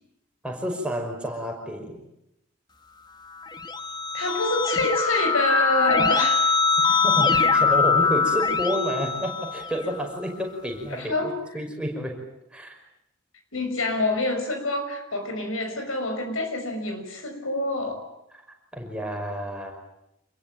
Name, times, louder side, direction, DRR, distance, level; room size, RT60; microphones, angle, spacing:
voice 1, 0.4-2.0 7.0-12.2 12.5-12.8 18.3-18.4 18.7-19.7, equal, 5° right, 1 dB, 5.5 m, -30 dB
Keyboard (musical), 3.4-10.0, left 5 dB, 20° left, 1.3 m, -23 dB
voice 2, 4.1-6.4 6.9-7.0 10.9-11.4 13.5-18.0, left 2 dB, 80° left, 6 dB, 5.9 m, -26 dB
27.5 x 22.0 x 9.2 m, 0.85 s
head